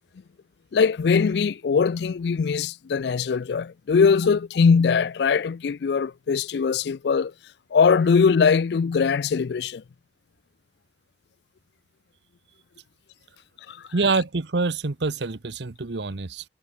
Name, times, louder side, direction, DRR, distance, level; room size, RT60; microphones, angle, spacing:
voice 1, 0.7-7.3 7.7-9.8 13.7-13.8, left 5 dB, 65° left, 0.4 m, -21 dB
voice 2, 13.9-16.4, right 3 dB, 70° right, 0.9 m, -26 dB
head